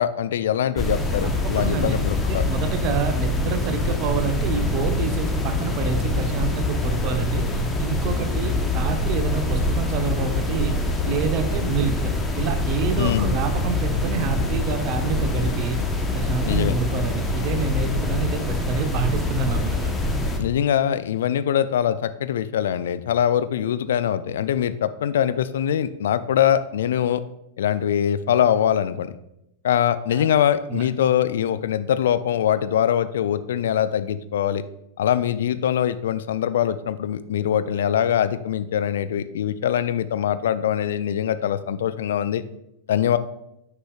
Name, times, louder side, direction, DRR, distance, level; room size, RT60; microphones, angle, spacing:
voice 1, 0.0-2.5 13.0-13.4 16.4-16.7 20.4-27.2 27.6-29.1 29.6-34.6 35.0-42.4 42.9-43.2, left 9 dB, 60° left, 12 dB, 0.3 m, -23 dB
sound 1, 0.8-20.4, left 2 dB, 10° left, 0.9 m, -24 dB
voice 2, 1.2-1.9 2.3-10.8 11.0-15.8 16.1-19.9 30.1-30.3 30.7-30.9, right 5 dB, 40° right, 7 dB, 0.8 m, -28 dB
9.7 x 5.0 x 2.3 m, 0.84 s
figure-of-eight pair, 90°, 0 cm